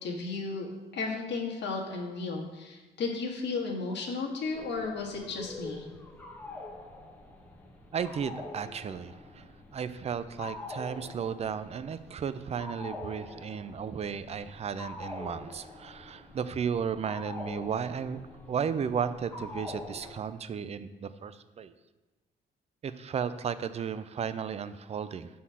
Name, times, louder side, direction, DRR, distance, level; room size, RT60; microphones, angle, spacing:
voice 1, 0.0-5.9, left 4 dB, 60° left, -1 dB, 1.5 m, -34 dB
sound 1, 4.5-20.2, left 2 dB, 10° left, 1.0 m, -45 dB
voice 2, 7.9-9.4 9.7-18.2 18.5-21.3 21.6-21.7 22.8-25.3, right 7 dB, 35° right, 13 dB, 0.4 m, -34 dB
6.3 x 3.7 x 5.7 m, 1.2 s
cardioid pair, 90°, 20 cm